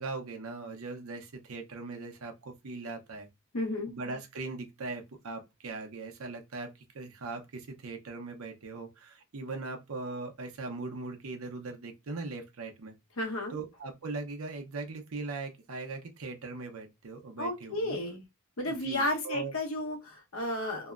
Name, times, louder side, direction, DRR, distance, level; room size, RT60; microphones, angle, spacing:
voice 1, 0.0-3.3 3.9-12.9 13.5-18.0 18.6-19.5, right 3 dB, 90° right, 0.7 m, -40 dB
voice 2, 3.5-3.9 13.2-13.6 17.4-18.2 18.6-20.9, left 1 dB, 85° left, 0.9 m, -32 dB
2.8 x 2.1 x 2.4 m
head